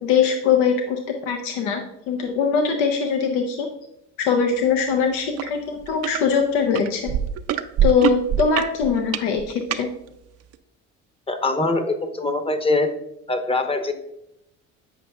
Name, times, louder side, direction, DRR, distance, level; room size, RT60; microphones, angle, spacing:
voice 1, 0.0-1.0 1.3-1.8 2.1-3.7 4.2-7.1 7.8-9.9, left 6 dB, 85° left, 4 dB, 0.6 m, -21 dB
sound 1, 5.4-5.5 5.8-6.2 6.8-9.8 10.5-10.6, right 9 dB, 45° right, 0.4 m, -23 dB
voice 2, 11.3-12.9 13.3-13.9, left 2 dB, 15° left, 8 dB, 0.7 m, -23 dB
8.2 x 5.2 x 2.2 m, 0.81 s
supercardioid pair, 80°, 35 cm